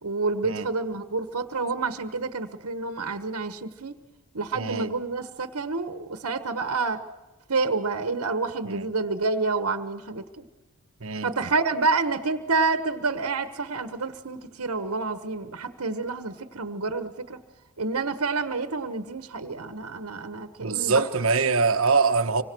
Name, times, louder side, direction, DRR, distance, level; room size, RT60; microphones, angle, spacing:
voice 1, 0.0-4.0 4.3-7.0 7.5-10.4 11.2-17.4 17.8-21.0, right 3 dB, 90° right, 1.4 m, -28 dB
voice 2, 4.5-4.9 8.6-8.9 11.0-11.3 20.6-22.4, right 4 dB, 65° right, 1.4 m, -23 dB
25.5 x 25.0 x 6.3 m
head